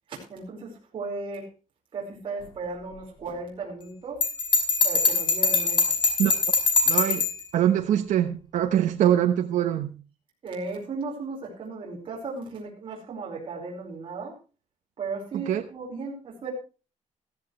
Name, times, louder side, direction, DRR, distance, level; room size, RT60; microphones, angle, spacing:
voice 1, 0.1-1.5 1.9-4.2 4.8-6.0 10.4-14.3 15.0-16.5, right 4 dB, 40° right, -2 dB, 4.9 m, -36 dB
Bell, 4.2-7.4, left 5 dB, 40° left, 4.9 m, -22 dB
voice 2, 6.9-10.0 15.3-15.6, right 10 dB, 80° right, 5 dB, 1.1 m, -24 dB
15.0 x 15.0 x 3.2 m, 0.33 s
cardioid pair, 165°, 13 cm